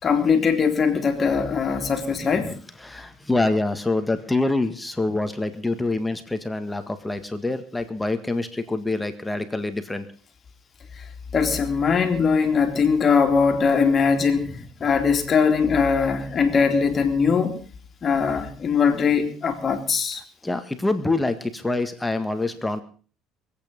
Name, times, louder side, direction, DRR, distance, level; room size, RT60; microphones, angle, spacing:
voice 1, 0.0-2.6 11.3-14.5 14.8-17.6 18.0-20.2, left 5 dB, 40° left, 2.8 m, -21 dB
voice 2, 2.4-10.1 20.4-22.8, left 2 dB, 10° left, 1.8 m, -26 dB
24.0 x 8.9 x 5.3 m
supercardioid pair, 95°, 0 cm